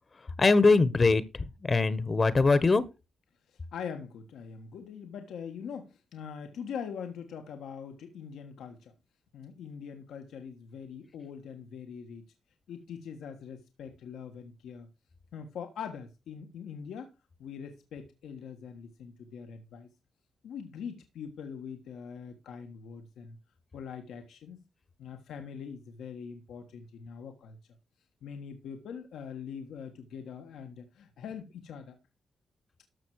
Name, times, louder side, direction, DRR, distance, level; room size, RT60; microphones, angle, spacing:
voice 1, 0.4-1.2 1.6-2.8, left 3 dB, 40° left, 1.2 m, -22 dB
voice 2, 3.5-8.9 9.3-12.2 12.7-14.9 15.3-17.1 17.4-19.9 20.4-23.4 23.7-24.6 25.0-27.6 28.2-32.0, left 7 dB, 85° left, 1.4 m, -43 dB
13.0 x 6.1 x 4.7 m
cardioid pair, 65°, 0 cm